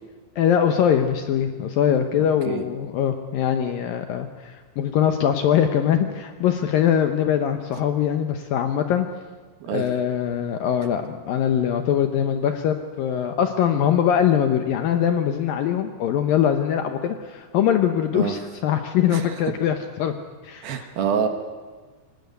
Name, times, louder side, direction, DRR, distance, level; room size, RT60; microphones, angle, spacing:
voice 1, 0.4-9.1 9.7-20.1 20.4-20.9, left 9 dB, 75° left, 7 dB, 2.3 m, -22 dB
voice 2, 2.2-2.6 9.6-9.9 18.1-18.3 19.1-19.3 20.6-21.3, right 7 dB, 65° right, 7 dB, 2.9 m, -26 dB
24.5 x 17.5 x 9.6 m, 1.4 s
omnidirectional pair, 5.1 m